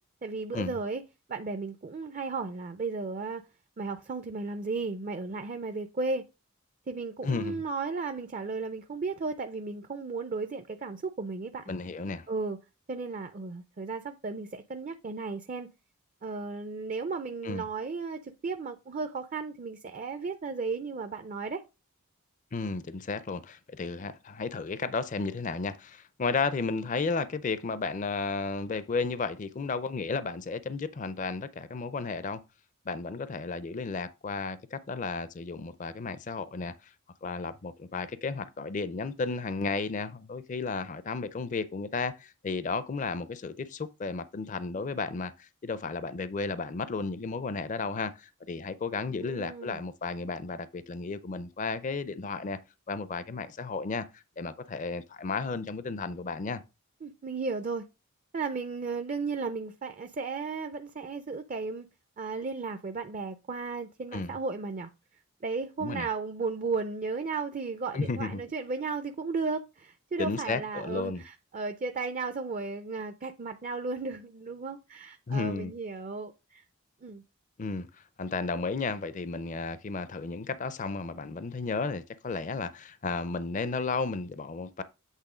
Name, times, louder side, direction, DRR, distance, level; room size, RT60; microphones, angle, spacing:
voice 1, 0.2-1.0 1.3-3.4 3.8-6.3 6.9-11.6 12.3-12.6 12.9-15.7 16.2-21.6 49.1-49.8 57.0-57.9 58.3-61.9 62.2-64.9 65.4-76.6 77.0-77.2, right 4 dB, 35° right, 0.4 m, -34 dB
voice 2, 7.2-7.6 11.7-12.3 17.4-17.6 22.5-32.4 32.9-36.7 37.2-52.6 52.9-56.6 64.1-64.4 65.8-66.1 67.9-68.4 70.2-71.2 75.3-75.7 77.6-77.9 78.2-84.8, left 4 dB, 35° left, 0.4 m, -33 dB
8.2 x 3.5 x 4.9 m
head